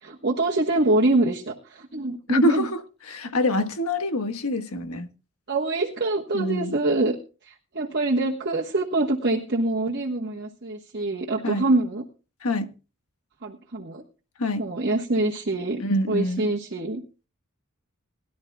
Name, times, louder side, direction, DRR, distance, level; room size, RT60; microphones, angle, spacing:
voice 1, 0.0-2.7 5.5-7.2 7.5-12.0 13.4-14.0 14.6-15.8 16.1-17.0, right 2 dB, 50° right, 1.3 m, -25 dB
voice 2, 2.3-2.8 3.1-5.1 6.3-6.8 11.4-11.7 12.4-12.7 14.4-14.6 15.8-16.5, left 1 dB, 75° left, 1.5 m, -25 dB
21.5 x 12.0 x 2.3 m
head